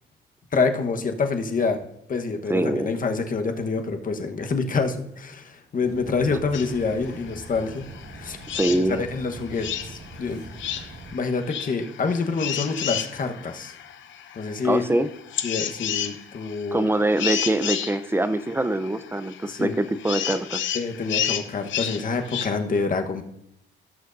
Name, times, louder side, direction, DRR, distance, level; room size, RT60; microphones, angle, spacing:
voice 1, 0.5-1.8 2.1-7.9 8.1-8.4 8.7-10.4 11.1-13.7 14.3-14.8 15.4-16.8 19.4-19.7 20.7-23.2, left 4 dB, 45° left, 5 dB, 1.2 m, -27 dB
voice 2, 2.5-3.0 8.5-9.0 14.6-15.1 16.7-20.6, right 1 dB, 10° right, 12 dB, 0.6 m, -24 dB
sound 1, 5.8-11.1, right 3 dB, 60° right, 1.9 m, -42 dB
sound 2, 6.5-22.5, left 9 dB, 75° left, 0.8 m, -32 dB
16.5 x 6.4 x 2.6 m, 0.82 s
cardioid pair, 90°, 20 cm